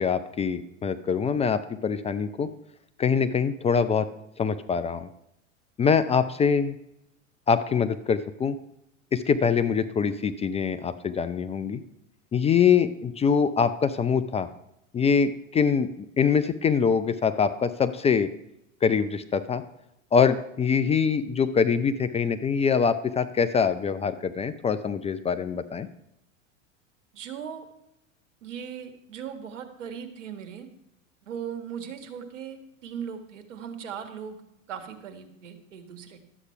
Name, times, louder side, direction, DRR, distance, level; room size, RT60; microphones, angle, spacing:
voice 1, 0.0-2.5 3.0-4.1 4.4-5.1 5.8-6.8 7.5-8.6 9.1-11.8 12.3-14.5 14.9-18.3 18.8-19.6 20.1-25.9, left 6 dB, 15° left, 12 dB, 0.5 m, -24 dB
voice 2, 27.1-27.7 28.4-30.7 31.2-34.4 34.7-36.2, right 8 dB, 70° right, 8 dB, 1.7 m, -38 dB
12.0 x 8.1 x 5.7 m, 0.82 s
hypercardioid pair, 90°, 38 cm